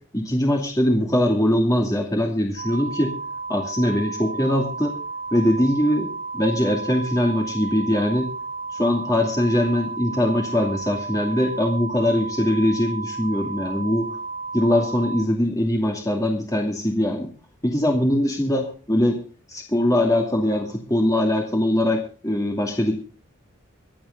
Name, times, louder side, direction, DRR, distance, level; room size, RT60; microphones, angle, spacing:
voice 1, 0.1-3.1 3.5-5.0 5.3-8.3 8.7-14.1 14.5-17.3 17.6-19.2 19.5-22.9, left 1 dB, 15° left, 1 dB, 2.5 m, -22 dB
sound 1, 2.6-15.2, right 3 dB, 50° left, 1.8 m, -33 dB
25.0 x 8.6 x 3.8 m, 0.37 s
head